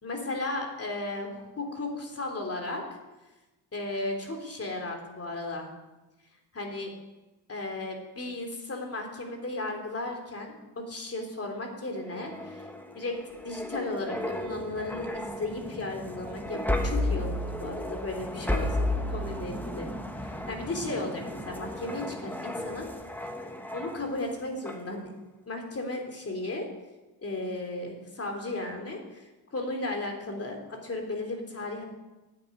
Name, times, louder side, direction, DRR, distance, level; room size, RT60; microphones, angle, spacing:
voice 1, 0.0-3.0 3.7-5.7 6.5-6.9 7.5-12.7 12.9-19.9 20.2-22.9 23.7-25.1 25.5-26.7 27.2-29.2 29.5-31.8, left 2 dB, 30° left, 2 dB, 3.1 m, -35 dB
sound 1, 12.0-24.3 24.7-24.9, left 1 dB, 5° left, 1.2 m, -34 dB
13.0 x 9.1 x 9.7 m, 1.1 s
wide cardioid pair, 165°, 44 cm